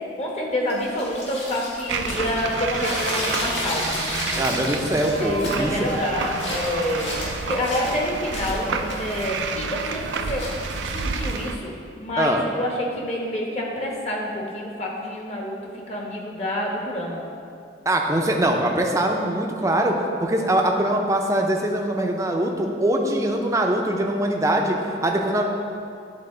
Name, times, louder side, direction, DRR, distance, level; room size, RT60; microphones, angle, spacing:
voice 1, 0.2-3.9 5.2-7.2 7.5-10.5 10.9-11.7 12.0-15.6 15.9-17.2, left 1 dB, 35° left, -2 dB, 1.0 m, -27 dB
sound 1, 0.7-11.4, left 1 dB, 90° left, 1.6 m, -33 dB
sound 2, 1.9-11.6, right 4 dB, 85° right, 0.4 m, -30 dB
voice 2, 4.4-5.8 12.2-12.4 17.9-25.4, right 1 dB, 15° right, 2 dB, 0.5 m, -22 dB
10.5 x 3.8 x 3.8 m, 2.5 s
head